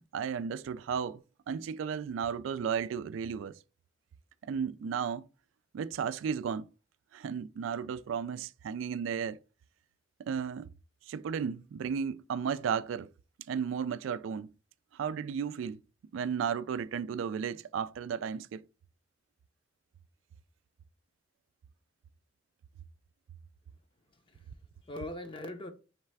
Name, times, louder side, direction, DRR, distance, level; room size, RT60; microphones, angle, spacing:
voice 1, 0.0-3.6 4.4-5.3 5.7-6.7 7.1-9.4 10.3-10.7 11.1-13.1 13.5-14.5 14.9-15.8 16.1-18.6, right 7 dB, 80° right, 0.3 m, -34 dB
voice 2, 24.1-25.7, left 1 dB, 25° left, 0.6 m, -42 dB
3.3 x 3.2 x 4.6 m
head